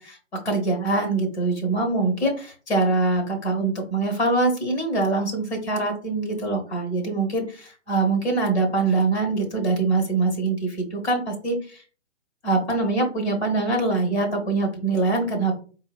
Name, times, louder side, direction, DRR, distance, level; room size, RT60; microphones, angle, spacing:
voice 1, 0.0-11.8 12.4-15.6, right 3 dB, 60° left, 3 dB, 1.3 m, -24 dB
3.8 x 2.2 x 2.3 m, 0.38 s
figure-of-eight pair, 130°, 37 cm